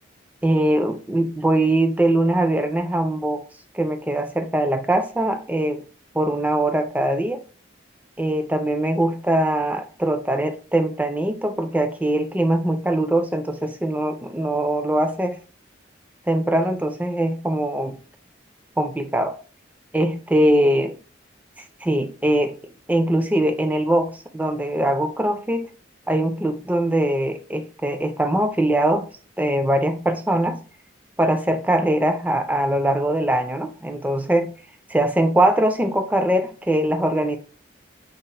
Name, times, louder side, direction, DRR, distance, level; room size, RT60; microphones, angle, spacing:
voice 1, 0.4-3.4 3.7-5.8 6.1-7.4 8.2-15.4 16.3-18.0 18.8-19.4 19.9-20.9 21.8-25.7 26.1-29.1 29.4-30.6 31.2-34.5 34.9-37.4, right 1 dB, 10° right, 0.4 m, -22 dB
5.3 x 2.1 x 3.9 m
head